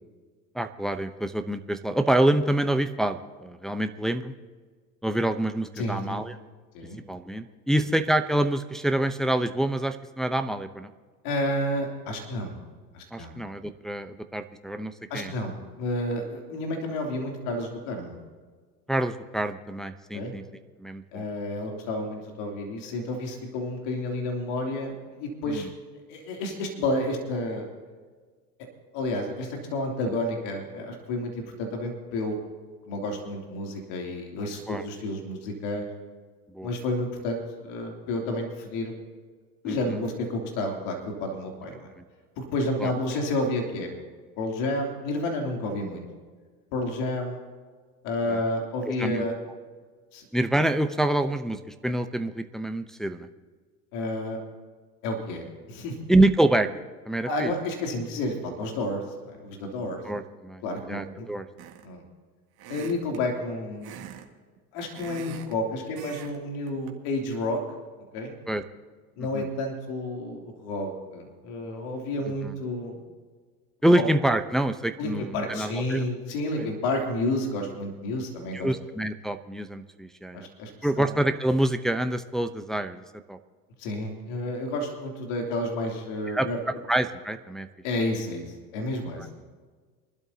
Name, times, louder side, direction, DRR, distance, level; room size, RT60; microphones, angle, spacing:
voice 1, 0.5-4.3 5.0-6.4 7.1-10.9 13.1-15.3 18.9-20.4 20.8-21.2 25.5-25.6 34.7-34.9 36.5-36.7 39.6-40.0 42.8-42.9 48.3-48.4 48.9-49.3 50.3-53.3 56.1-56.7 57.1-57.5 60.1-60.6 60.9-61.4 68.5-68.6 69.3-69.5 72.4-72.5 73.8-76.1 76.6-76.7 78.5-80.5 80.8-83.0 83.3-83.4 86.3-87.7 89.2-89.3, right 1 dB, ahead, 8 dB, 0.7 m, -26 dB
voice 2, 5.8-6.2 6.7-7.0 7.8-7.9 11.2-12.6 12.9-13.3 15.1-18.2 20.1-20.3 21.1-25.7 26.1-27.7 28.9-32.4 32.8-35.9 36.6-39.0 39.6-41.9 42.4-44.0 44.4-46.0 46.7-47.4 48.0-49.3 50.1-50.3 53.9-54.4 55.0-56.0 57.3-60.0 60.6-61.3 61.8-62.0 62.7-64.0 64.7-67.6 68.1-68.4 69.2-73.0 73.9-74.1 75.0-78.7 80.3-80.7 81.0-81.1 83.8-86.6 87.8-89.4, left 1 dB, 60° left, 2 dB, 3.1 m, -30 dB
sound 1, 61.6-62.0 62.6-63.2 63.8-64.3 64.6-65.5 66.0-66.4 66.7-66.9, right 10 dB, 50° right, 1.9 m, -42 dB
25.0 x 12.5 x 2.8 m, 1.5 s
hypercardioid pair, 80°, 47 cm